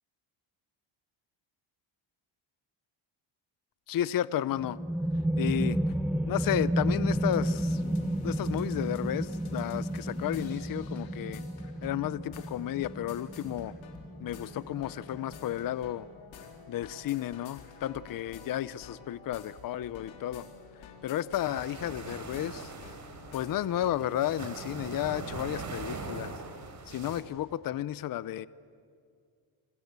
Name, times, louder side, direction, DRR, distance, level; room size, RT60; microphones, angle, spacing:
voice 1, 3.9-4.8 5.4-5.9 6.3-7.8 8.2-11.4 11.8-13.7 14.2-16.1 16.7-20.5 20.8-22.7 23.3-26.3 26.9-28.5, left 12 dB, 45° left, 18 dB, 0.6 m, -32 dB
sound 1, 4.5-15.9, right 1 dB, 5° right, 0.8 m, -32 dB
sound 2, 7.1-23.9, left 6 dB, 70° left, 3.8 m, -51 dB
sound 3, 21.4-27.2, right 4 dB, 35° right, 3.5 m, -41 dB
28.0 x 25.5 x 8.2 m, 2.3 s
cardioid pair, 120°, 49 cm